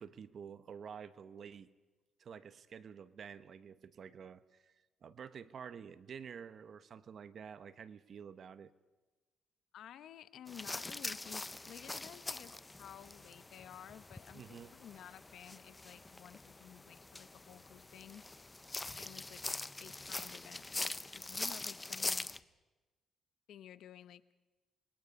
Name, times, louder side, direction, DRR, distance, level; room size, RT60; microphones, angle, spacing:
voice 1, 0.0-1.7 2.2-4.7 5.0-8.7 14.3-14.7, right 7 dB, 55° right, 14 dB, 1.0 m, -49 dB
voice 2, 9.7-18.2 19.0-19.4 19.8-22.3 23.5-24.2, left 10 dB, 75° left, 15 dB, 0.8 m, -53 dB
sound 1, 10.5-22.4, left 2 dB, 20° left, 0.6 m, -43 dB
sound 2, 12.7-22.4, left 4 dB, 45° left, 4.0 m, -70 dB
27.5 x 21.5 x 5.3 m, 1.2 s
cardioid pair, 90°, 0 cm